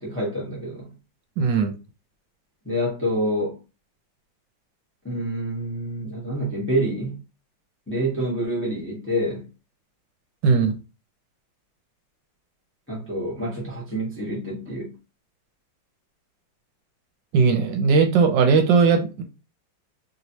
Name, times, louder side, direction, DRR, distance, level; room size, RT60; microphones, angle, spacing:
voice 1, 0.0-0.9 2.6-3.6 5.0-7.2 7.9-9.5 12.9-14.9, right 1 dB, 10° left, 0.8 m, -27 dB
voice 2, 1.4-1.7 10.4-10.8 17.3-19.2, right 5 dB, 75° right, 1.2 m, -18 dB
3.2 x 2.9 x 2.7 m
omnidirectional pair, 2.0 m